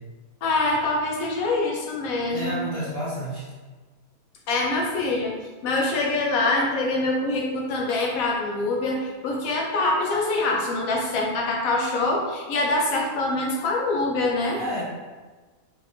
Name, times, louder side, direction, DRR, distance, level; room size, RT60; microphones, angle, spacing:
voice 1, 0.4-2.6 4.5-5.4 5.6-14.6, left 2 dB, 65° left, -1 dB, 1.1 m, -24 dB
voice 2, 2.3-3.4 14.5-14.8, equal, 25° left, -15 dB, 1.1 m, -30 dB
3.3 x 3.2 x 2.6 m, 1.3 s
omnidirectional pair, 1.7 m